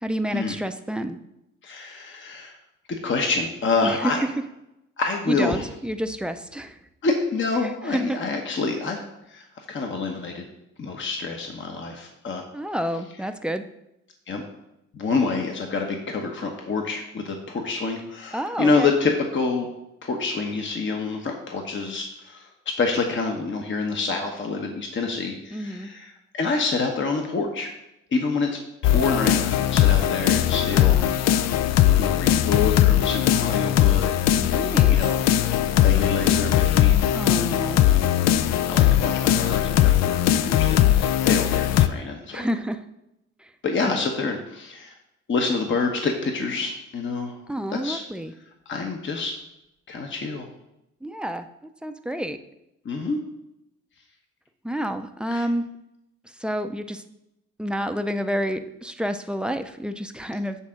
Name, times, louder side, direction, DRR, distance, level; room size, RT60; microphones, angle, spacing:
voice 1, 0.0-1.2 3.8-4.1 5.3-6.8 7.6-8.2 12.5-13.6 18.3-18.9 25.5-25.9 30.7-31.2 34.4-35.0 37.1-37.8 42.3-42.8 43.8-44.1 47.5-48.3 51.0-51.5 51.8-52.4 54.6-55.6 56.4-57.0 57.6-60.6, equal, 5° right, 7 dB, 0.6 m, -29 dB
voice 2, 1.6-2.6 3.0-4.2 5.0-5.6 7.0-9.0 9.3-10.5 10.8-12.4 14.3-14.4 14.9-19.7 20.0-27.7 28.1-28.5 28.8-31.0 31.9-34.0 34.9-35.2 35.8-37.2 37.7-38.0 38.7-42.5 43.6-44.9 45.3-47.4 47.7-48.0 48.7-49.3 49.9-50.5 52.8-53.2 55.3-55.5, left 4 dB, 40° left, 2 dB, 1.1 m, -27 dB
sound 1, 28.8-41.9, left 11 dB, 60° left, 0.5 m, -19 dB
8.4 x 3.6 x 6.4 m, 0.87 s
cardioid pair, 80°, 30 cm